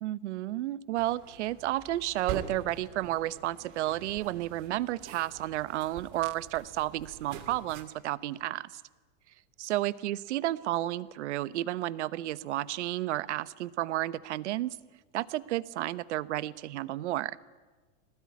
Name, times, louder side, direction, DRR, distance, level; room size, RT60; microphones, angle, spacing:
voice 1, 0.0-8.7 9.6-14.7 15.1-17.4, right 15 dB, 70° right, 19 dB, 1.0 m, -32 dB
sound 1, 1.0-7.8, right 7 dB, 45° right, 2.7 m, -45 dB
22.0 x 19.0 x 9.6 m, 1.3 s
supercardioid pair, 160°, 36 cm